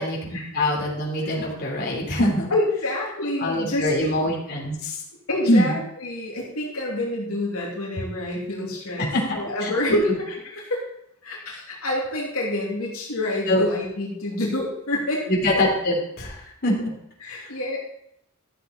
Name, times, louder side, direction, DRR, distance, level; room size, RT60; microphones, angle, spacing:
voice 1, 0.5-2.5 3.4-5.0 5.5-5.7 9.1-10.0 13.5-13.6 15.3-16.9 17.3-17.5, left 1 dB, 50° left, -2 dB, 3.1 m, -24 dB
voice 2, 2.5-4.2 5.3-10.8 11.2-15.2 17.2-17.8, left 1 dB, 85° left, -3 dB, 2.8 m, -27 dB
13.0 x 7.6 x 4.2 m, 0.75 s
head